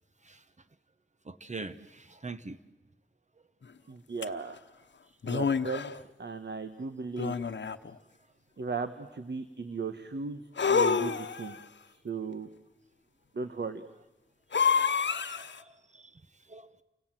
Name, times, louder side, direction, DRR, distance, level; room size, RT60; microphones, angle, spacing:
voice 1, 1.2-2.6 14.6-16.2 16.5-16.8, right 3 dB, 40° right, 12 dB, 1.1 m, -44 dB
voice 2, 3.9-4.6 5.2-5.9 6.2-7.3 8.6-10.4 10.7-11.6 11.9-12.5 13.3-13.8, right 4 dB, 65° right, 10 dB, 1.3 m, -36 dB
sound 1, 4.2-4.3 5.2-6.0 7.2-7.9 10.6-11.6 14.5-15.6, left 6 dB, 70° left, 1.0 m, -28 dB
30.0 x 25.0 x 7.6 m, 1.1 s
wide cardioid pair, 100°, 19 cm